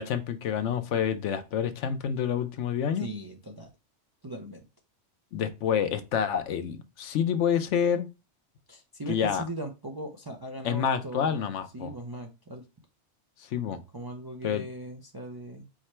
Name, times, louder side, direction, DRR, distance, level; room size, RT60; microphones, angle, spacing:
voice 1, 0.0-3.1 5.3-8.1 9.1-9.4 10.6-11.9 13.4-13.8 14.4-14.6, left 8 dB, 85° left, 1.0 m, -28 dB
voice 2, 2.9-3.7 4.2-4.6 8.7-12.6 13.9-15.7, right 1 dB, 35° right, 0.3 m, -39 dB
4.8 x 2.1 x 4.2 m
omnidirectional pair, 1.2 m